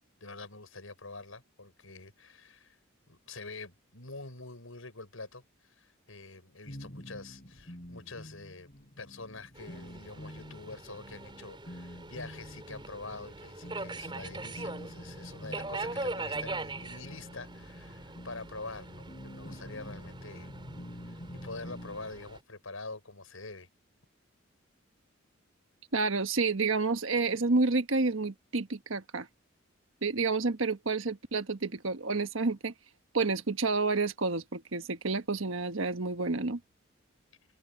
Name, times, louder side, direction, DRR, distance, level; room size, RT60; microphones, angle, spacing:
voice 1, 0.2-2.8 3.1-20.5 21.0-23.7, left 3 dB, 85° left, 6.4 m, -46 dB
sound 1, 6.6-22.1, equal, 40° left, 4.9 m, -47 dB
Subway metro underground, 9.6-22.4, right 2 dB, 25° right, 5.5 m, -42 dB
voice 2, 25.9-29.3 30.0-32.7 33.1-36.6, right 3 dB, 75° right, 1.3 m, -29 dB
head